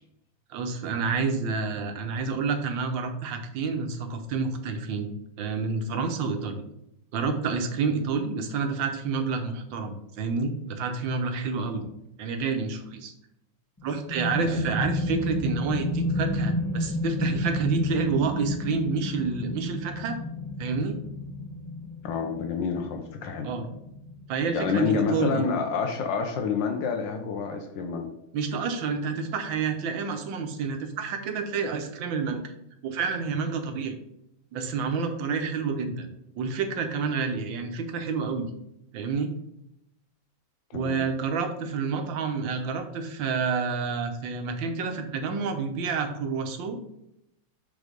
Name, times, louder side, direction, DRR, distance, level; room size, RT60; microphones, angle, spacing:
voice 1, 0.5-5.1 5.4-6.6 7.1-11.8 12.2-13.1 13.8-20.2 20.6-21.0 23.4-23.7 24.3-25.4 28.3-32.4 32.8-33.9 34.5-36.1 36.4-38.5 38.9-39.3 40.7-46.8, right 5 dB, 85° right, 6 dB, 1.6 m, -29 dB
sound 1, 13.8-25.2, left 1 dB, 15° left, 0.6 m, -31 dB
voice 2, 22.0-23.5 24.5-28.1 40.7-41.0, left 5 dB, 80° left, 5 dB, 1.4 m, -28 dB
7.2 x 3.7 x 5.1 m, 0.79 s
omnidirectional pair, 2.0 m